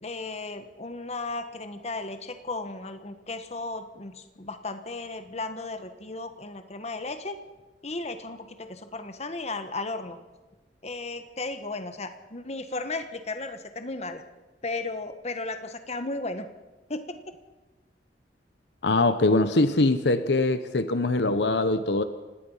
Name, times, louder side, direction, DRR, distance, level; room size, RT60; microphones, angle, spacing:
voice 1, 0.0-7.4 7.8-10.2 10.8-14.2 14.6-16.5 16.9-17.4, left 3 dB, 40° left, 9 dB, 1.4 m, -35 dB
voice 2, 18.8-22.0, left 2 dB, 70° left, 11 dB, 1.0 m, -22 dB
30.0 x 17.5 x 5.7 m, 1.2 s
head